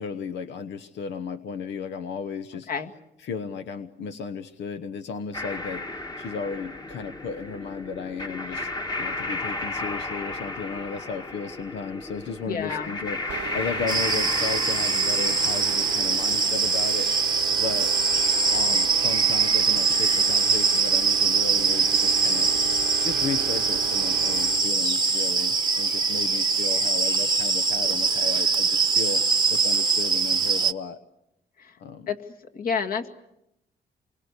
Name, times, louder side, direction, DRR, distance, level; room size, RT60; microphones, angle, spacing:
voice 1, 0.0-2.7 3.2-5.9 6.2-8.7 9.0-17.1 17.5-17.9 18.5-22.5 23.0-29.2 29.5-31.0 31.8-32.1, left 5 dB, 90° left, 10 dB, 1.1 m, -34 dB
sound 1, 5.3-16.5, left 2 dB, 25° left, 1.5 m, -34 dB
voice 2, 12.5-12.9 31.6-31.8 32.1-32.2 32.5-33.1, left 6 dB, 55° left, 4 dB, 2.1 m, -29 dB
sound 2, 13.3-24.7, right 11 dB, 85° right, 1.0 m, -37 dB
sound 3, 13.9-30.7, right 4 dB, 25° right, 0.9 m, -23 dB
28.5 x 23.5 x 8.2 m, 0.85 s
cardioid pair, 135°, 18 cm